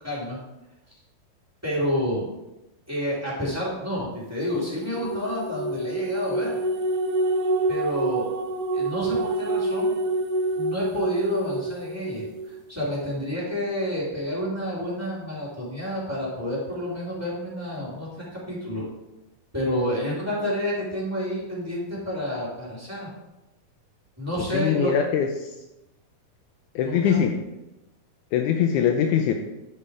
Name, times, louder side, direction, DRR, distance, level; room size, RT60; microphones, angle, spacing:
voice 1, 0.0-0.4 1.6-2.2 2.9-6.6 7.7-8.3 8.7-9.9 10.6-18.9 19.5-23.1 24.2-24.9 26.8-27.2, equal, 5° right, -6 dB, 2.9 m, -29 dB
sound 1, 4.6-12.4, right 2 dB, 90° right, 2.4 m, -27 dB
voice 2, 24.5-25.6 26.8-27.4 28.3-29.3, left 8 dB, 80° left, 4 dB, 1.8 m, -22 dB
11.0 x 5.5 x 4.9 m, 0.97 s
omnidirectional pair, 4.1 m